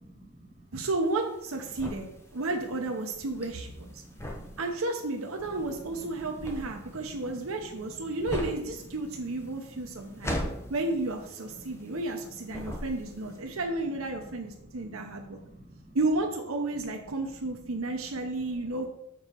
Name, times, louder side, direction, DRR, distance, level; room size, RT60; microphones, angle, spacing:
voice 1, 0.0-0.5 3.9-4.6 5.8-6.8 7.0-8.1 9.7-10.7 11.6-12.0 12.6-12.8 13.4-13.6 14.2-14.3 14.7-16.0 17.7-17.8 18.7-18.8, right 1 dB, 40° right, -3 dB, 2.3 m, -50 dB
voice 2, 0.7-4.0 4.6-10.4 10.7-15.4 15.9-18.8, right 2 dB, 85° right, 2 dB, 0.9 m, -32 dB
sound 1, 1.0-12.2 12.5-13.3, equal, 15° left, 1.0 m, -38 dB
7.1 x 4.2 x 6.3 m, 0.81 s
head